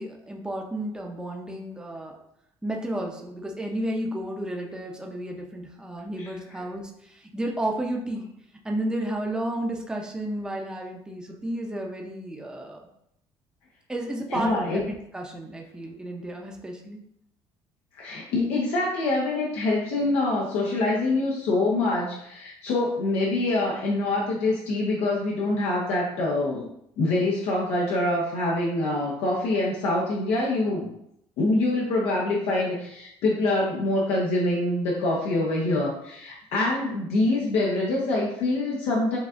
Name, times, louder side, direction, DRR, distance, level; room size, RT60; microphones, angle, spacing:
voice 1, 0.0-2.2 2.6-8.3 8.6-12.8 13.9-17.0, right 1 dB, 5° right, 1 dB, 0.7 m, -32 dB
voice 2, 14.3-14.9 18.0-26.6 27.0-30.9 31.4-39.2, left 2 dB, 80° left, -4 dB, 0.9 m, -25 dB
7.0 x 2.4 x 2.5 m, 0.76 s
cardioid pair, 105°, 11 cm